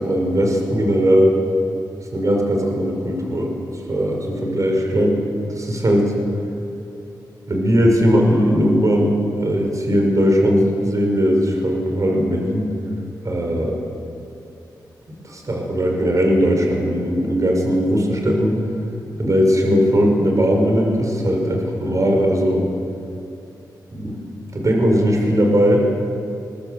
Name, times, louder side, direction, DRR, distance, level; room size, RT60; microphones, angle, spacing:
voice 1, 0.0-1.4 2.1-3.5 3.9-5.2 5.5-6.1 7.5-12.7 13.2-13.8 15.1-18.6 19.2-22.7 23.9-24.2 24.5-25.9, equal, 50° right, 1 dB, 5.5 m, -18 dB
22.0 x 21.0 x 7.8 m, 2.6 s
cardioid pair, 70°, 7 cm